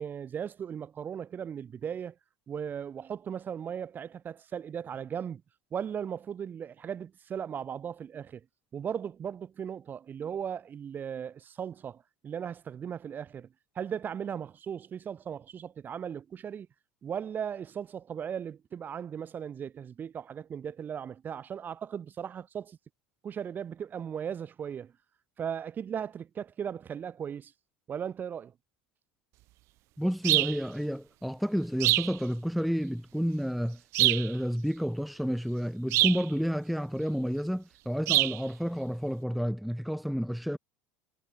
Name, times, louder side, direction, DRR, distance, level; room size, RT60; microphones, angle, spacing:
voice 1, 0.0-2.2 2.5-5.4 5.7-8.5 8.7-13.5 13.8-16.7 17.0-22.8 23.2-24.9 25.4-27.5 27.9-28.5, right 8 dB, 35° right, 3.5 m, -37 dB
voice 2, 30.0-40.6, equal, ahead, 1.9 m, -30 dB
sound 1, 30.2-30.6 31.8-32.1 33.9-34.3 35.9-36.2 38.1-38.4, right 20 dB, 55° right, 0.8 m, -24 dB
hypercardioid pair, 85°, 6 cm